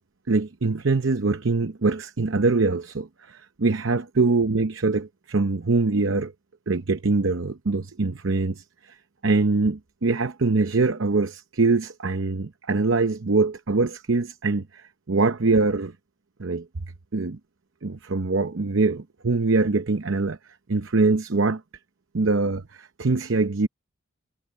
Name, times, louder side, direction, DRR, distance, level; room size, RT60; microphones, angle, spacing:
voice 1, 0.3-6.3 6.7-8.9 9.2-15.9 16.4-16.7 17.1-17.4 17.8-20.4 20.7-21.6 22.1-23.7, right 3 dB, 65° right, 0.8 m, -23 dB
head